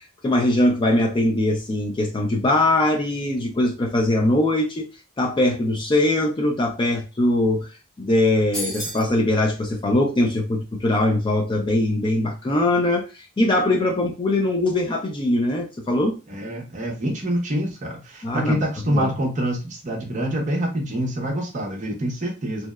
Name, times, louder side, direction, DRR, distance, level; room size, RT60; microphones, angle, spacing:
voice 1, 0.2-4.9 5.2-7.7 8.0-16.2 18.2-18.6 18.9-19.1, left 1 dB, 25° left, 0.4 m, -21 dB
sound 1, 8.5-9.1, equal, 5° left, 0.8 m, -30 dB
voice 2, 16.3-22.7, right 1 dB, 35° right, 0.6 m, -26 dB
2.8 x 2.1 x 2.2 m
head